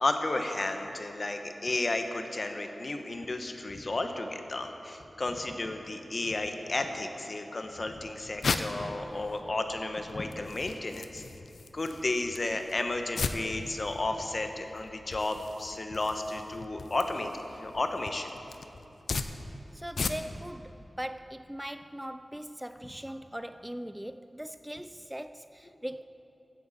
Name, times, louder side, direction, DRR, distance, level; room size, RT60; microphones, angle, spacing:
voice 1, 0.0-11.2 11.7-18.3, left 2 dB, 50° left, 1.0 m, -33 dB
sound 1, 7.8-20.5, left 4 dB, 85° left, 0.5 m, -38 dB
voice 2, 19.7-26.1, equal, 10° right, 0.3 m, -40 dB
16.0 x 10.0 x 4.2 m
cardioid pair, 50°, 0 cm